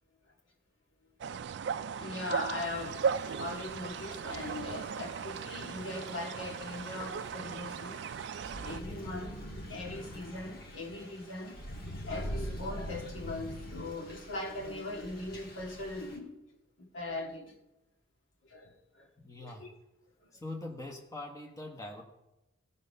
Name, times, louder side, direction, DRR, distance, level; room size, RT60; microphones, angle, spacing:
sound 1, 1.2-8.8, right 6 dB, 55° right, 0.3 m, -37 dB
voice 1, 2.0-8.1 8.6-9.4 9.7-11.6 12.1-16.3 16.9-17.5 18.5-18.7 19.4-19.7, left 2 dB, 70° left, 1.9 m, -40 dB
Thunder / Rain, 2.6-16.2, equal, 45° left, 1.8 m, -45 dB
voice 2, 19.2-19.7 20.3-22.0, left 2 dB, 15° left, 1.2 m, -43 dB
16.0 x 5.6 x 5.4 m
head